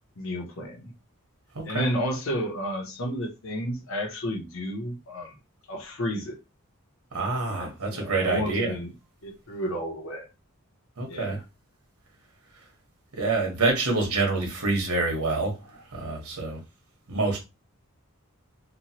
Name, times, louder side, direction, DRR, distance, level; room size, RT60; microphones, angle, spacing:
voice 1, 0.2-0.9 1.6-5.3 5.7-6.4 7.5-8.9 9.2-10.3 11.1-11.4, equal, 65° left, 0.8 m, -32 dB
voice 2, 1.5-1.9 7.1-8.8 11.0-11.4 13.2-16.6 17.1-17.4, right 3 dB, 90° right, 1.2 m, -27 dB
3.0 x 2.2 x 2.8 m
head